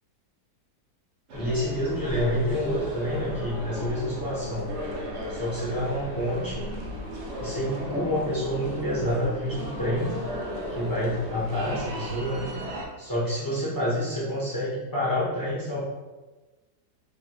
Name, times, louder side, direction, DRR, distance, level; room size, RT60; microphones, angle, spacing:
voice 1, 1.3-4.7 5.3-6.8 7.4-10.1 10.7-12.5 13.0-15.8, equal, 30° left, -8 dB, 0.3 m, -28 dB
sound 1, 1.3-12.9, equal, 65° right, 0.7 m, -35 dB
3.8 x 2.4 x 2.9 m, 1.2 s
omnidirectional pair, 1.7 m